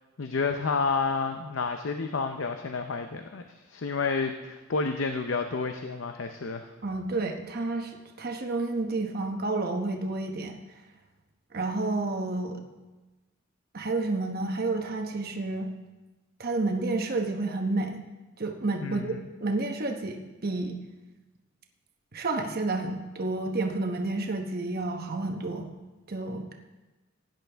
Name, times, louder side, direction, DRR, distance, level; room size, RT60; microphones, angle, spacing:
voice 1, 0.2-6.7 18.8-19.2, left 4 dB, 65° left, 7 dB, 0.6 m, -30 dB
voice 2, 6.8-7.9 8.2-10.6 11.5-12.6 13.7-15.7 16.4-18.0 18.4-19.2 19.4-20.8 22.1-25.7 26.1-26.5, right 2 dB, 50° right, 3 dB, 1.0 m, -30 dB
16.5 x 10.5 x 3.4 m, 1.2 s
head